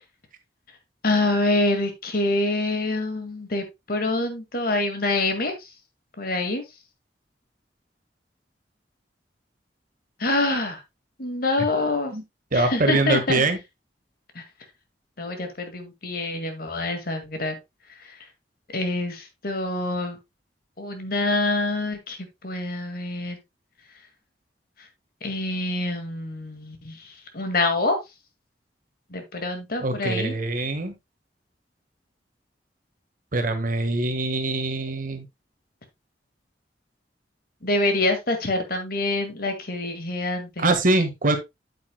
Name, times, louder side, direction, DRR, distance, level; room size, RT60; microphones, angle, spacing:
voice 1, 1.0-5.7 6.2-6.6 10.2-10.8 11.2-12.1 12.5-13.4 14.4-14.5 15.2-17.6 18.0-18.2 18.7-20.2 20.8-22.2 22.4-23.4 25.2-28.0 29.1-30.3 37.6-40.7, left 2 dB, 60° left, 6 dB, 2.0 m, -26 dB
voice 2, 12.5-13.6 29.8-31.0 33.3-35.3 40.6-41.4, right 2 dB, 50° right, 7 dB, 1.5 m, -23 dB
8.6 x 8.3 x 2.2 m, 0.20 s
head